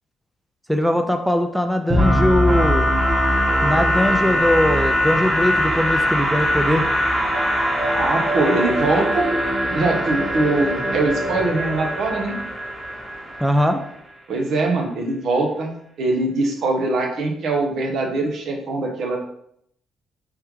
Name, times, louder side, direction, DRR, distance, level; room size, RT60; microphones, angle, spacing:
voice 1, 0.7-2.9 3.6-6.9 13.4-13.8, left 1 dB, ahead, 6 dB, 0.4 m, -20 dB
sound 1, 1.9-13.7, equal, 20° right, 1.2 m, -21 dB
voice 2, 7.9-9.3 9.7-12.4 14.3-15.7 16.0-19.2, right 2 dB, 70° right, 2 dB, 0.8 m, -22 dB
3.5 x 3.3 x 3.1 m, 0.71 s
cardioid pair, 90°, 0 cm